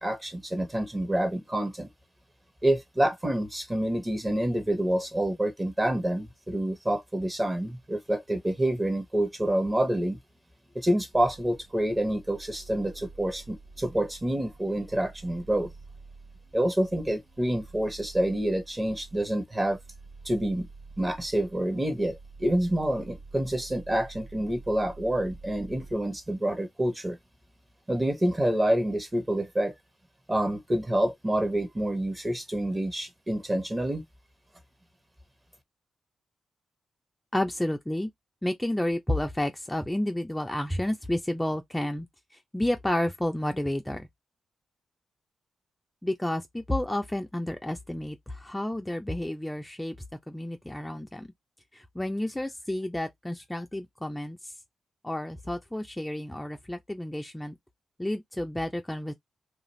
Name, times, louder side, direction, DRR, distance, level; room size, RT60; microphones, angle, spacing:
voice 1, 0.0-1.9 2.6-10.2 10.7-15.7 16.5-19.8 20.2-20.7 21.0-27.2 27.9-29.7 30.3-34.0, right 1 dB, 20° right, 1.0 m, -27 dB
sound 1, 11.1-25.9, right 3 dB, 90° right, 1.0 m, -49 dB
voice 2, 37.3-38.1 38.4-42.1 42.5-44.1 46.0-49.9 50.3-51.3 51.7-54.5 55.0-57.6 58.0-59.1, left 1 dB, 10° left, 0.5 m, -30 dB
2.5 x 2.5 x 3.1 m
cardioid pair, 60°, 0 cm